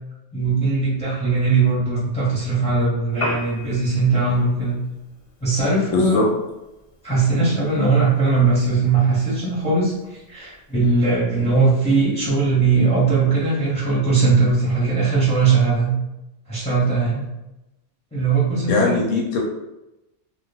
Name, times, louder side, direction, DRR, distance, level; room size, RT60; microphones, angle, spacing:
voice 1, 0.3-4.8 5.4-6.2 7.0-15.9 16.5-17.3 18.1-19.0, right 4 dB, 5° left, -7 dB, 0.7 m, -19 dB
Piano, 3.1-11.2, left 1 dB, 60° left, 0.3 m, -39 dB
voice 2, 5.9-6.3 18.7-19.4, left 3 dB, 85° left, -1 dB, 0.9 m, -20 dB
2.3 x 2.1 x 3.3 m, 0.95 s
omnidirectional pair, 1.3 m